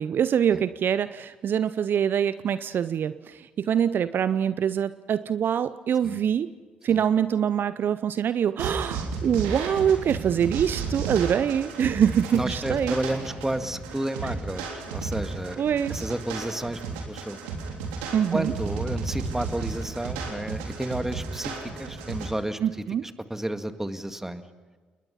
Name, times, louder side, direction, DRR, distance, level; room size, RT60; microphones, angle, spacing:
voice 1, 0.0-6.5 6.8-13.0 14.2-14.3 15.6-16.1 18.1-18.5 22.6-23.0, right 8 dB, 55° right, 15 dB, 0.6 m, -24 dB
sound 1, 8.6-22.3, right 5 dB, 80° right, 3.5 m, -33 dB
voice 2, 12.3-15.6 15.9-17.4 18.3-22.6 23.0-24.4, right 1 dB, 10° right, 9 dB, 1.9 m, -31 dB
29.5 x 21.0 x 5.7 m, 1.4 s
hypercardioid pair, 50°, 4 cm